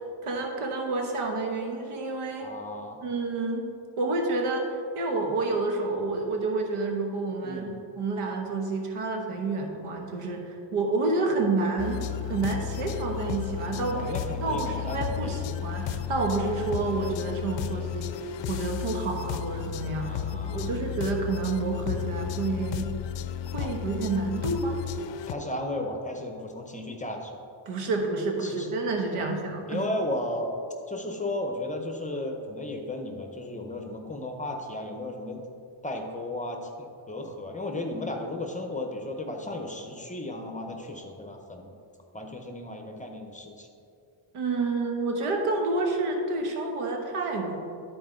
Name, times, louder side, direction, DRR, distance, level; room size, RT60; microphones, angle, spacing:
voice 1, 0.2-2.5 3.0-3.7 4.0-4.7 4.9-7.7 8.0-14.1 14.4-20.2 20.5-22.9 23.5-24.8 27.7-29.8 44.3-47.6, right 3 dB, 85° right, 2 dB, 1.3 m, -29 dB
voice 2, 2.4-3.0 7.4-7.7 13.7-15.4 17.7-18.0 20.0-20.7 23.6-23.7 25.3-27.4 28.4-28.7 29.2-29.3 29.7-30.5 30.9-35.4 35.8-41.7 42.1-43.7, left 1 dB, 15° left, 3 dB, 0.9 m, -35 dB
sound 1, 11.8-25.3, left 10 dB, 60° left, 0.5 m, -33 dB
12.0 x 4.5 x 3.8 m, 2.5 s
cardioid pair, 95°, 49 cm